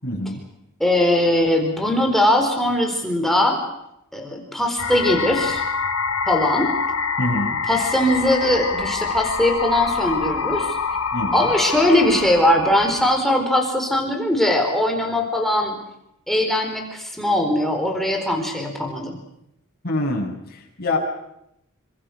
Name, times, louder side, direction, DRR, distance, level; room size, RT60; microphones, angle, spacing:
voice 1, 0.0-0.4 7.2-7.6 11.1-11.5 19.8-21.0, left 1 dB, 45° left, 0 dB, 7.8 m, -25 dB
voice 2, 0.8-3.7 4.1-5.6 6.3-6.7 7.6-10.8 11.3-15.8 16.3-19.2, left 1 dB, ahead, 2 dB, 4.4 m, -20 dB
sound 1, 4.8-13.2, left 5 dB, 80° left, 2.1 m, -26 dB
28.0 x 25.5 x 6.6 m, 0.80 s
head